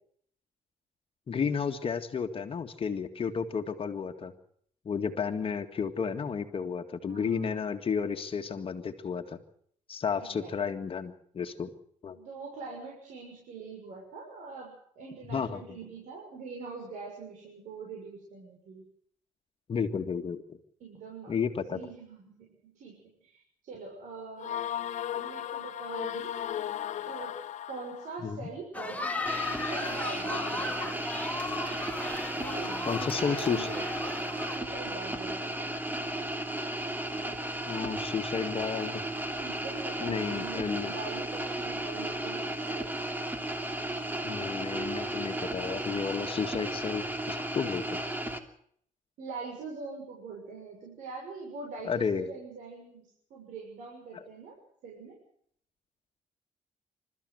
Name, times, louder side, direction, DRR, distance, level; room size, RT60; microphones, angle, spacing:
voice 1, 1.3-4.3 4.9-9.4 9.9-11.7 12.0-12.2 15.3-15.8 19.7-20.6 21.3-21.8 28.2-28.5 32.9-33.7 37.7-39.0 40.0-40.9 44.2-48.0 51.8-52.3 54.1-54.2, left 6 dB, 45° left, 6 dB, 1.9 m, -32 dB
voice 2, 7.0-7.4 10.2-10.5 12.1-14.7 14.9-18.8 20.8-21.3 21.7-24.6 25.1-26.3 27.1-27.3 27.7-31.2 32.4-33.8 34.5-36.0 39.4-42.9 49.2-54.5 54.8-55.2, right 4 dB, 80° right, -1 dB, 6.6 m, -43 dB
sound 1, 24.4-28.2, left 10 dB, 70° left, 0.9 m, -36 dB
sound 2, 28.7-34.6, left 3 dB, 10° left, 2.4 m, -36 dB
sound 3, 29.3-48.4, right 1 dB, 15° right, 2.9 m, -34 dB
27.5 x 14.0 x 7.9 m, 0.65 s
cardioid pair, 90°, 13 cm